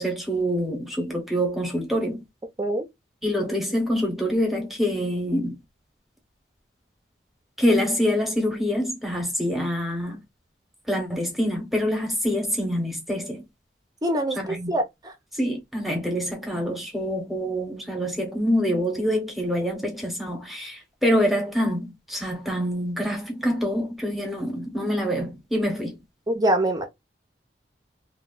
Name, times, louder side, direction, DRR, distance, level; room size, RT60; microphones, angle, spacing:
voice 1, 0.0-2.2 3.2-5.5 7.6-10.2 10.9-13.4 14.4-14.7 15.4-26.0, equal, ahead, 0.8 m, -26 dB
voice 2, 14.0-15.1 26.3-26.9, right 1 dB, 20° right, 0.5 m, -24 dB
3.0 x 2.2 x 2.3 m
head